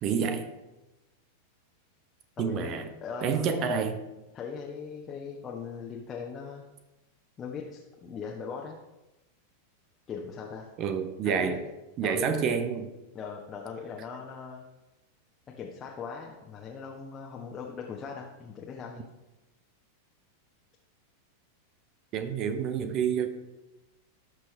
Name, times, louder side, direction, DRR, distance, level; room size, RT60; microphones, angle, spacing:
voice 1, 0.0-0.5 2.4-2.9 3.2-4.0 10.8-11.6 12.0-12.9 22.1-23.3, right 7 dB, 35° right, 9 dB, 0.9 m, -28 dB
voice 2, 2.4-3.7 4.3-6.6 7.4-8.8 10.1-10.7 11.2-11.6 12.0-12.5 13.1-14.6 15.6-19.0, left 6 dB, 25° left, -1 dB, 1.2 m, -39 dB
17.5 x 6.1 x 3.4 m, 1.0 s
figure-of-eight pair, 90°, 0 cm